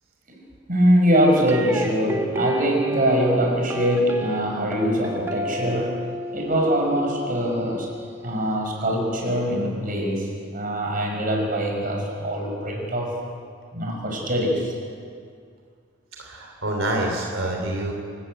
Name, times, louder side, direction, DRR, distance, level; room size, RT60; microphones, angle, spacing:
voice 1, 0.7-5.9 6.3-7.9 8.2-13.1 13.7-14.7, equal, 45° right, 1 dB, 5.8 m, -23 dB
sound 1, 1.5-8.6, right 1 dB, 15° right, 1.3 m, -32 dB
voice 2, 16.2-17.9, right 1 dB, 85° right, 1 dB, 3.4 m, -26 dB
28.0 x 15.0 x 8.9 m, 2.2 s
head